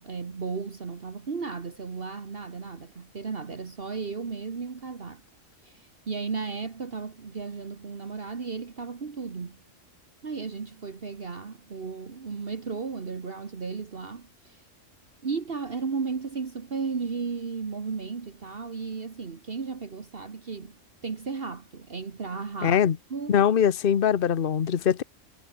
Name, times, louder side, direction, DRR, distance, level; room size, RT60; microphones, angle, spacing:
voice 1, 0.0-5.2 5.6-9.6 10.2-14.6 15.2-22.8 23.1-23.4, right 5 dB, 50° right, 1.6 m, -35 dB
voice 2, 22.6-23.0 23.3-25.0, left 8 dB, 50° left, 1.1 m, -22 dB
omnidirectional pair, 1.3 m